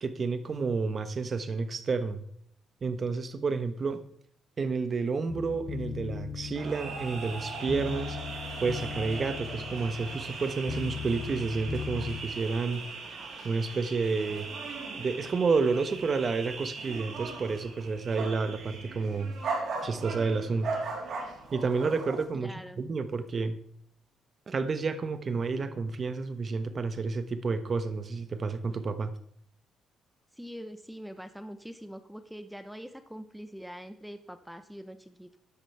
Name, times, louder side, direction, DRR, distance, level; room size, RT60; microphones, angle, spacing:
voice 1, 0.0-2.2 2.8-4.0 4.6-8.2 8.6-12.8 13.4-14.5 15.0-19.3 19.8-20.7 21.5-23.6 24.5-29.1, right 4 dB, 40° right, 11 dB, 1.2 m, -30 dB
sound 1, 5.3-12.2, left 7 dB, 35° left, 0.9 m, -39 dB
sound 2, 6.5-22.2, right 4 dB, 65° right, 3.8 m, -39 dB
voice 2, 22.3-22.8 30.3-35.4, equal, ahead, 10 dB, 0.9 m, -44 dB
14.0 x 10.0 x 3.4 m, 0.67 s
cardioid pair, 90°, 0 cm